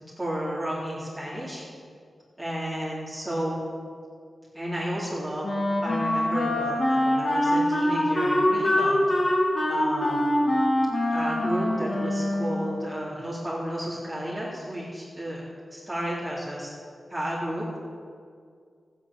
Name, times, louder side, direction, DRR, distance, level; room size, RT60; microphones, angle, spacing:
voice 1, 0.2-1.6 2.4-3.5 4.5-5.5 5.8-9.0 9.7-10.3 11.1-15.4 15.7-16.7 17.1-17.7, equal, 10° right, -8 dB, 3.9 m, -32 dB
Wind instrument woodwind instrument, 5.4-12.8, left 1 dB, 40° left, 3.6 m, -24 dB
14.5 x 10.0 x 7.1 m, 2.2 s
wide cardioid pair, 80°, 0 cm